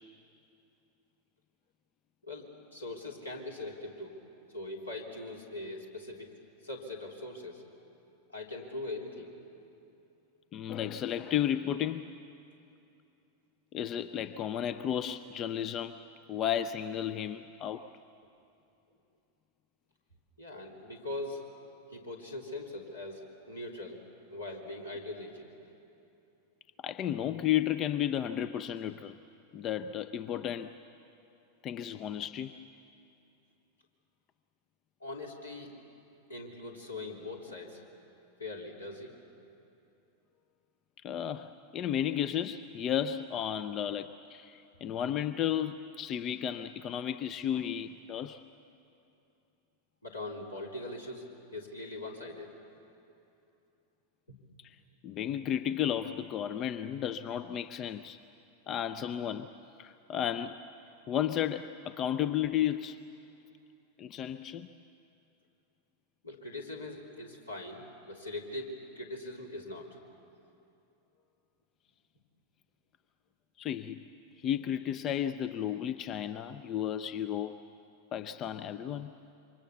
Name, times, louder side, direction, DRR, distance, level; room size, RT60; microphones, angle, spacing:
voice 1, 2.2-4.2 4.5-6.3 6.6-7.6 8.3-9.3 20.4-21.4 21.9-24.0 24.3-25.7 35.0-35.7 36.3-37.8 38.4-39.1 50.0-51.2 51.5-52.5 54.3-54.4 66.2-70.0, left 2 dB, 80° left, 3.4 m, -41 dB
voice 2, 10.5-12.1 13.7-16.0 16.3-17.9 26.8-29.2 29.5-30.7 31.6-32.6 41.0-48.4 54.6-54.8 55.0-58.2 58.7-59.5 59.8-60.6 61.1-63.0 64.0-64.7 73.6-74.0 74.4-77.6 78.1-79.1, left 10 dB, 30° left, 0.5 m, -33 dB
27.5 x 24.5 x 7.1 m
figure-of-eight pair, 90°, 0 cm